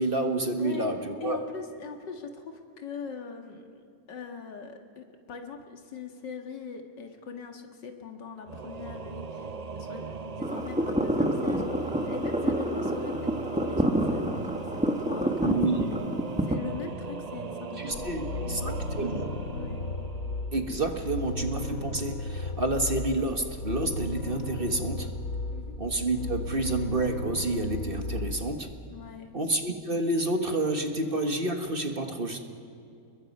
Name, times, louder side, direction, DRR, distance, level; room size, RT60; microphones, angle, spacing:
voice 1, 0.0-1.4 15.4-16.0 17.8-19.3 20.5-25.1 25.8-28.7 29.3-32.4, right 2 dB, 35° right, 5 dB, 1.5 m, -29 dB
voice 2, 0.6-0.9 1.2-15.5 16.4-19.8 25.5-25.8 28.9-29.3, left 5 dB, 85° left, 4 dB, 2.4 m, -41 dB
Singing / Musical instrument, 8.5-21.0, right 4 dB, 65° right, 0.4 m, -39 dB
sound 1, 10.4-16.5, equal, 5° right, 1.2 m, -28 dB
sound 2, 17.9-28.6, left 2 dB, 55° left, 1.4 m, -35 dB
30.0 x 21.5 x 5.4 m, 2.6 s
omnidirectional pair, 1.9 m